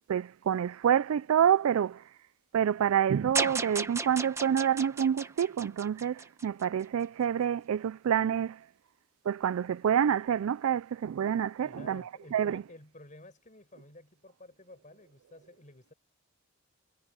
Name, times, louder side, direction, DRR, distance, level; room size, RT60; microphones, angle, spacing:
voice 1, 0.1-2.0 2.5-8.6 9.3-12.0 12.3-12.6, right 8 dB, 75° right, 0.3 m, -27 dB
sound 1, 3.4-6.6, right 3 dB, 15° right, 1.0 m, -35 dB
voice 2, 11.6-15.9, left 1 dB, 35° left, 5.8 m, -52 dB
head